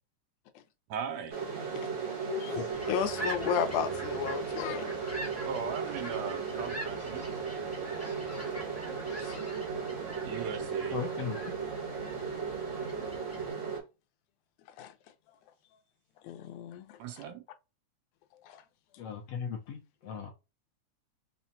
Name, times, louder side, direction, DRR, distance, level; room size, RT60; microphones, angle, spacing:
voice 1, 0.9-1.4 5.4-7.2 10.2-11.0 17.0-17.4, right 7 dB, 75° right, 1.8 m, -38 dB
sound 1, 1.3-13.8, right 5 dB, 45° right, 0.9 m, -36 dB
voice 2, 2.3-4.9 9.2-9.5 14.8-14.9 16.2-17.2 18.4-18.6, left 9 dB, 90° left, 2.1 m, -34 dB
sound 2, 2.7-13.5, right 1 dB, 10° left, 0.7 m, -44 dB
voice 3, 10.9-11.4 19.0-20.3, left 7 dB, 75° left, 1.5 m, -37 dB
5.7 x 2.2 x 2.7 m
omnidirectional pair, 3.4 m